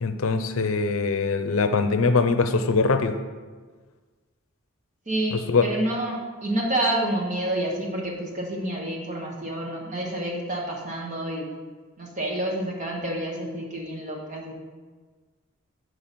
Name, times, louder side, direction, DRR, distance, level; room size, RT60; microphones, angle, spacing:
voice 1, 0.0-3.1 5.3-5.7, left 4 dB, 75° left, 8 dB, 0.6 m, -22 dB
voice 2, 5.1-11.4 12.0-14.5, right 1 dB, 35° right, -1 dB, 1.3 m, -28 dB
6.7 x 4.8 x 5.8 m, 1.4 s
head